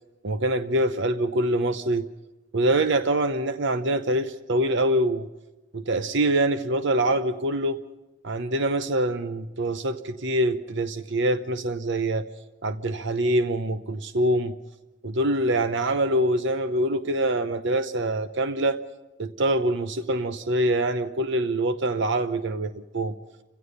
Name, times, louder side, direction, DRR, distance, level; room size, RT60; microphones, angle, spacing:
voice 1, 0.2-2.1 2.5-5.3 5.7-7.8 8.2-12.2 12.6-14.6 15.0-18.8 19.2-23.2, right 1 dB, 60° right, 10 dB, 0.8 m, -24 dB
29.5 x 16.5 x 5.6 m, 1.0 s
head